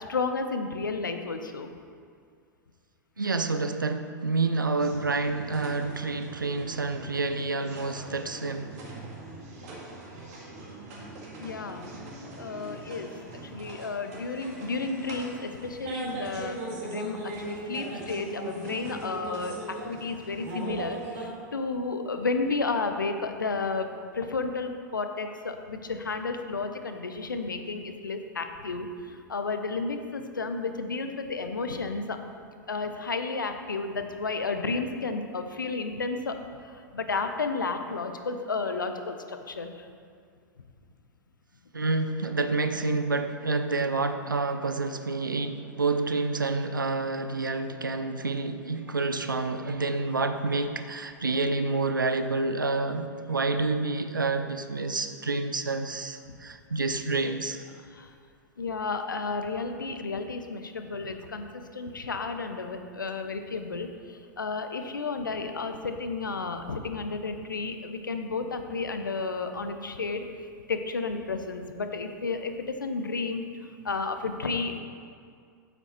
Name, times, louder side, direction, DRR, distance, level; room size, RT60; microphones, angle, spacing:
voice 1, 0.0-1.7 11.4-11.9 12.4-13.1 13.5-23.9 24.1-32.2 32.7-36.4 36.6-39.9 57.9-58.1 58.6-70.2 70.7-74.8, left 4 dB, 75° left, 7 dB, 0.8 m, -32 dB
voice 2, 3.2-8.8 41.7-57.6, right 3 dB, 80° right, 9 dB, 0.6 m, -28 dB
sound 1, 4.8-21.3, right 2 dB, 50° right, 2.1 m, -40 dB
8.8 x 7.8 x 4.5 m, 2.1 s
figure-of-eight pair, 95°, 11 cm